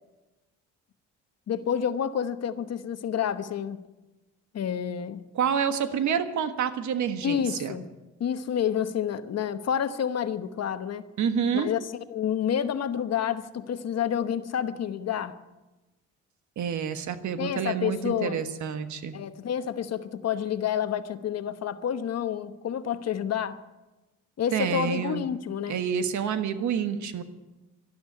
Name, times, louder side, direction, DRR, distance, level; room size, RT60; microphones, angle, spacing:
voice 1, 1.5-3.8 4.5-5.2 7.2-7.9 8.2-11.1 11.5-11.8 12.1-15.4 17.4-18.4 19.1-23.6 24.4-25.8, left 8 dB, 55° left, 11 dB, 1.1 m, -29 dB
voice 2, 5.3-7.7 11.2-11.7 16.6-19.1 24.5-25.3 25.7-27.2, right 7 dB, 70° right, 10 dB, 1.4 m, -28 dB
12.5 x 12.0 x 9.5 m, 1.1 s
cardioid pair, 90°, 30 cm